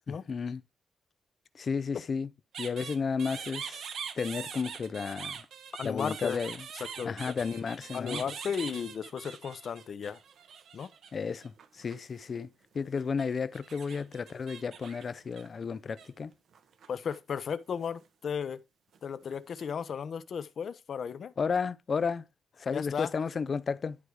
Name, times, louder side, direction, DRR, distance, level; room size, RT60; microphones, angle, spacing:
voice 1, 0.1-0.6 1.5-2.3 2.6-3.8 4.2-5.4 5.8-6.5 7.1-8.2 11.1-12.5 12.7-16.3 21.4-22.2 22.6-24.0, left 5 dB, 40° left, 0.5 m, -33 dB
sound 1, 2.5-11.1 11.4-12.4 13.0-16.1 16.5-17.4 17.7-18.0 18.9-19.6, right 7 dB, 75° right, 1.3 m, -43 dB
voice 2, 5.8-6.4 6.7-7.3 7.9-10.2 10.7-10.9 16.9-18.6 19.0-21.3 22.7-23.1, left 7 dB, 55° left, 0.9 m, -35 dB
11.5 x 4.8 x 4.8 m
wide cardioid pair, 150°, 0 cm